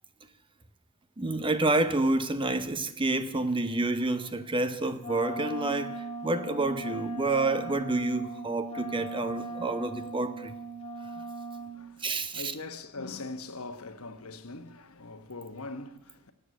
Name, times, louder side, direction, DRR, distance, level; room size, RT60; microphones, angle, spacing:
voice 1, 1.2-10.6 12.0-12.5, right 2 dB, 25° right, 0.8 m, -29 dB
Wind instrument woodwind instrument, 5.0-11.8, right 2 dB, 30° left, 2.1 m, -38 dB
voice 2, 11.5-16.3, left 3 dB, 70° left, 1.2 m, -42 dB
17.5 x 8.1 x 8.2 m
head